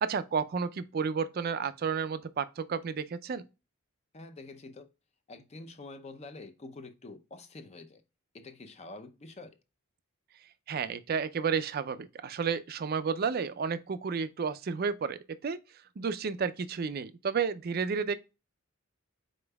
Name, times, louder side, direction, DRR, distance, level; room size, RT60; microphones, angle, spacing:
voice 1, 0.0-3.4 10.7-15.6 16.0-18.2, right 6 dB, 45° right, 0.4 m, -31 dB
voice 2, 4.1-4.9 5.3-8.0 8.3-9.6, left 2 dB, 30° left, 0.5 m, -47 dB
5.1 x 4.3 x 2.2 m
head